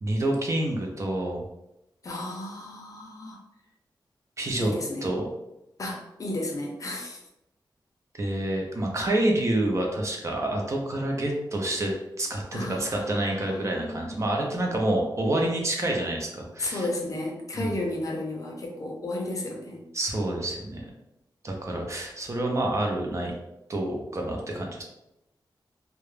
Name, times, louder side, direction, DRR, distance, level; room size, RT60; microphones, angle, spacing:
voice 1, 0.0-1.4 4.4-4.7 5.0-5.3 8.2-16.9 17.5-17.8 19.9-20.9 21.4-23.3 23.7-24.8, right 1 dB, 40° right, 0 dB, 0.5 m, -28 dB
voice 2, 2.0-3.4 4.6-5.1 5.8-7.2 12.5-14.2 16.6-19.8, left 1 dB, 45° left, 0 dB, 0.5 m, -33 dB
2.3 x 2.0 x 3.1 m, 0.89 s
wide cardioid pair, 130°, 8 cm